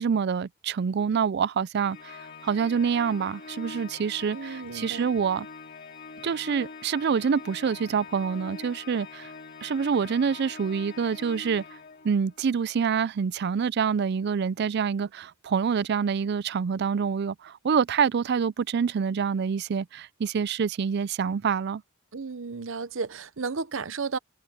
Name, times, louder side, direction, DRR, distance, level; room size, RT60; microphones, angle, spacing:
voice 1, 0.0-5.5 6.2-9.3 9.6-11.6 12.0-21.8, right 6 dB, 55° right, 0.4 m, -26 dB
Organ, 1.8-12.4, left 4 dB, 50° left, 3.4 m, -44 dB
voice 2, 4.3-5.1 22.1-24.2, right 4 dB, 75° right, 0.8 m, -33 dB
head